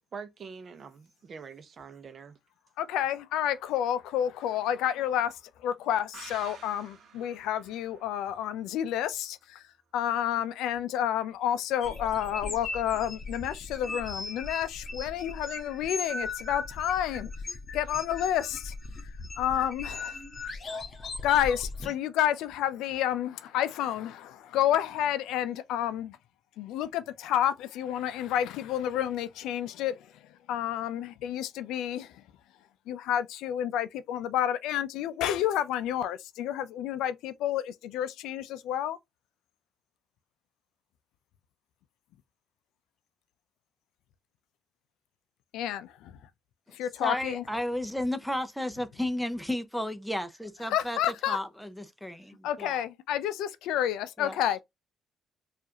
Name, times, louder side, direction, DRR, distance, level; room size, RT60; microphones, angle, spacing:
voice 1, 0.0-2.4, right 5 dB, 45° right, 0.7 m, -44 dB
voice 2, 2.8-9.6 9.9-17.3 17.7-18.7 19.0-20.2 21.2-26.2 26.6-32.2 32.9-39.0 45.5-46.2 46.7-47.4 50.7-51.4 52.4-54.6, left 10 dB, 85° left, 0.4 m, -30 dB
sound 1, 6.1-9.6 9.9-10.0, right 6 dB, 70° right, 0.9 m, -52 dB
sound 2, 11.8-21.9, left 3 dB, 40° left, 1.1 m, -38 dB
voice 3, 47.0-51.0 51.3-52.8 54.2-54.4, left 1 dB, ahead, 0.6 m, -33 dB
4.6 x 2.5 x 2.8 m
cardioid pair, 100°, 0 cm